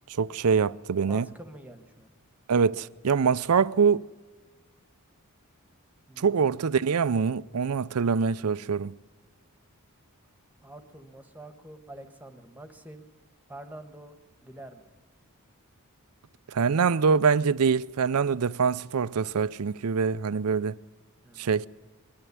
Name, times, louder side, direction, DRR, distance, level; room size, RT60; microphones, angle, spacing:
voice 1, 0.1-1.3 2.5-4.0 6.2-8.9 16.5-20.8 21.4-21.7, right 5 dB, 75° right, 0.5 m, -24 dB
voice 2, 1.1-2.1 6.1-6.6 10.6-13.1 13.5-14.1 14.4-14.9 21.2-21.5, right 1 dB, 5° right, 1.4 m, -46 dB
21.5 x 12.5 x 9.6 m
head